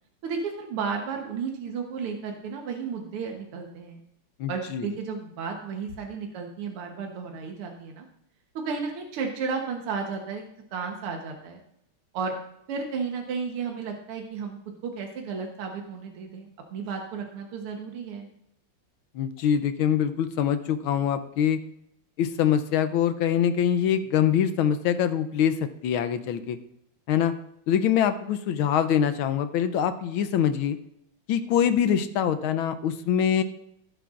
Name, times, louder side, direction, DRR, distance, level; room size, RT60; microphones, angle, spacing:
voice 1, 0.2-4.0 4.5-8.1 8.6-10.4 10.7-11.6 12.1-12.4 12.7-18.3, right 5 dB, 80° right, 2 dB, 2.0 m, -33 dB
voice 2, 4.4-4.9 19.1-21.6 22.2-26.6 27.1-27.3 27.7-30.8 31.3-33.4, left 9 dB, 75° left, 10 dB, 1.4 m, -24 dB
15.5 x 9.1 x 2.5 m, 0.76 s
omnidirectional pair, 2.4 m